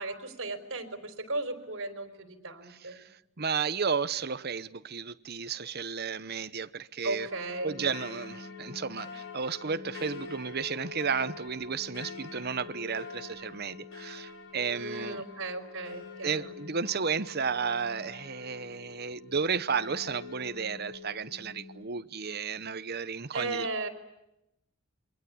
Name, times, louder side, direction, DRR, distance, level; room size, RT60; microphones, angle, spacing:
voice 1, 0.0-3.0 7.0-7.8 14.7-16.5 23.3-23.9, right 2 dB, 65° right, 4.0 m, -36 dB
voice 2, 2.7-7.3 7.6-15.2 16.2-23.7, right 5 dB, 50° right, 0.9 m, -33 dB
sound 1, 7.3-21.8, left 5 dB, 65° left, 5.4 m, -45 dB
28.5 x 24.0 x 8.6 m
head